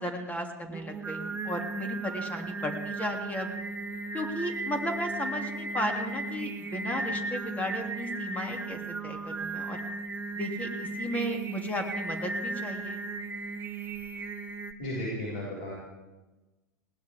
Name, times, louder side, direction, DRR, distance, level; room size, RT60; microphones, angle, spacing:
voice 1, 0.0-3.5 4.1-9.8 10.3-13.1, equal, 15° left, 3 dB, 3.0 m, -35 dB
Singing, 0.7-14.7, right 3 dB, 20° right, 1.3 m, -36 dB
voice 2, 14.8-15.8, left 1 dB, 60° left, -5 dB, 6.0 m, -34 dB
20.0 x 19.0 x 3.7 m, 1.2 s
hypercardioid pair, 95°, 10 cm